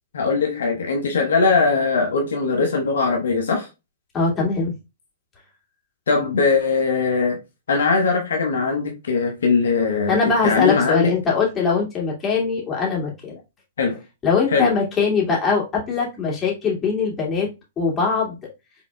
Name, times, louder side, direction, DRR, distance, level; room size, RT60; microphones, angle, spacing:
voice 1, 0.1-3.7 6.1-7.4 7.7-10.2 10.4-11.1 13.8-14.0 14.5-14.7, left 4 dB, 75° left, 1.1 m, -20 dB
voice 2, 4.1-4.7 10.1-13.4 14.2-17.5 17.8-18.4, left 5 dB, 20° left, 2.4 m, -21 dB
5.8 x 3.6 x 2.3 m
hypercardioid pair, 115°, 0 cm